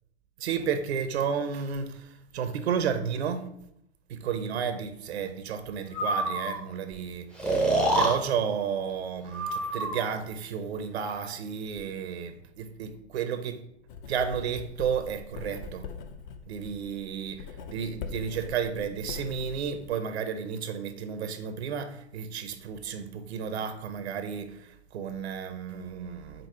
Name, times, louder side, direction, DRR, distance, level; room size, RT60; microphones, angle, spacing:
voice 1, 0.4-3.5 4.1-7.3 7.9-13.6 14.1-15.9 16.5-26.5, right 7 dB, 75° right, 0.5 m, -32 dB
Breathing, 5.9-6.6 7.4-8.2 9.3-10.1, right 2 dB, 5° left, 0.5 m, -26 dB
Writing, 13.9-19.9, left 6 dB, 45° left, 0.6 m, -42 dB
5.1 x 2.0 x 4.3 m
hypercardioid pair, 120°, 33 cm